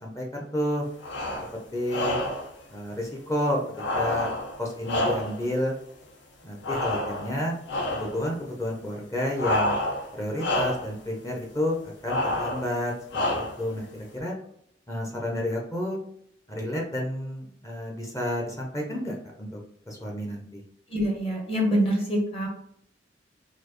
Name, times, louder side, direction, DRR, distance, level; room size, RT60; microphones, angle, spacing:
voice 1, 0.0-0.8 1.7-2.2 2.7-3.6 3.9-4.3 4.6-5.7 6.4-7.5 7.9-9.7 10.1-11.8 12.0-12.9 13.3-14.3 14.9-16.0 16.5-19.6 19.9-20.6, left 1 dB, 15° left, 0 dB, 0.7 m, -30 dB
sound 1, 1.0-1.5 1.9-2.5 3.8-5.5 6.6-7.4 7.7-8.2 9.4-10.1 10.4-10.9 12.1-12.7 13.1-13.7, left 1 dB, 70° left, 0.8 m, -28 dB
voice 2, 20.9-22.5, equal, 35° left, -1 dB, 1.2 m, -25 dB
4.2 x 2.7 x 3.0 m, 0.68 s
head